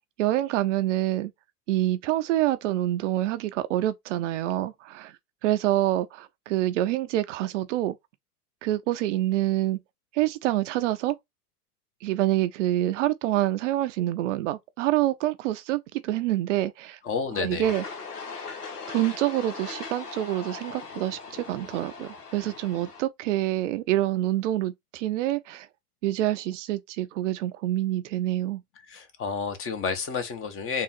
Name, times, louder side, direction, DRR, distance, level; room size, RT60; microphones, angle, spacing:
voice 1, 0.2-1.3 1.7-5.1 5.4-7.9 8.6-9.8 10.1-11.2 12.0-17.0 17.4-17.8 18.9-25.7 26.0-28.6, right 14 dB, 55° right, 0.5 m, -26 dB
voice 2, 17.0-17.7 28.8-30.8, left 5 dB, 30° left, 1.0 m, -30 dB
sound 1, 17.6-23.0, left 4 dB, 80° left, 1.3 m, -39 dB
3.7 x 2.5 x 4.2 m
hypercardioid pair, 95°, 46 cm